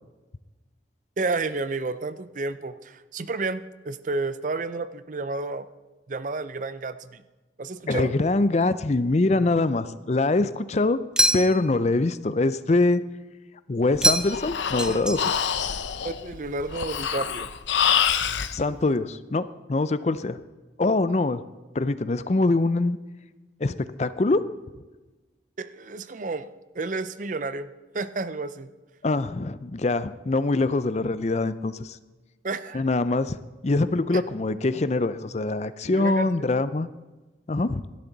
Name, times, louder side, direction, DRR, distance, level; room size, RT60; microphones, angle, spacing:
voice 1, 1.2-5.7 6.1-7.2 7.6-8.1 16.0-17.5 25.6-26.5 26.7-27.7 27.9-28.7 32.4-32.8 35.9-36.3, right 3 dB, 45° right, 13 dB, 0.5 m, -31 dB
voice 2, 7.9-11.0 11.3-13.0 13.7-15.2 18.5-20.4 20.8-21.4 21.7-23.0 23.6-24.4 29.0-32.0 32.7-33.4 33.6-36.9 37.5-37.8, left 2 dB, 35° left, 14 dB, 0.5 m, -24 dB
sound 1, 11.2-11.8 14.0-14.5 14.8-15.5, right 1 dB, 5° right, 0.7 m, -24 dB
Breathing, 13.9-18.5, left 8 dB, 80° left, 0.7 m, -26 dB
17.5 x 12.0 x 4.0 m, 1.2 s
head